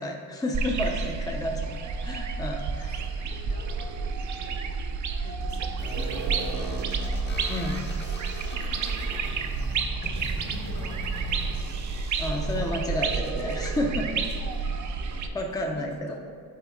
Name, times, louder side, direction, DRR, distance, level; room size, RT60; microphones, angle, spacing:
voice 1, 0.0-2.9 7.5-7.8 12.2-14.2 15.3-16.2, left 1 dB, 10° left, 1 dB, 0.6 m, -31 dB
sound 1, 0.5-15.3, right 4 dB, 55° right, 0.6 m, -30 dB
voice 2, 1.0-1.3 2.8-4.6 5.2-5.7 5.9-9.8 10.1-11.9 12.5-12.6 14.2-16.2, left 2 dB, 60° left, -1 dB, 1.4 m, -48 dB
sound 2, 5.8-13.8, left 1 dB, 30° left, 0.9 m, -41 dB
8.5 x 4.1 x 3.7 m, 2.3 s
cardioid pair, 100°, 37 cm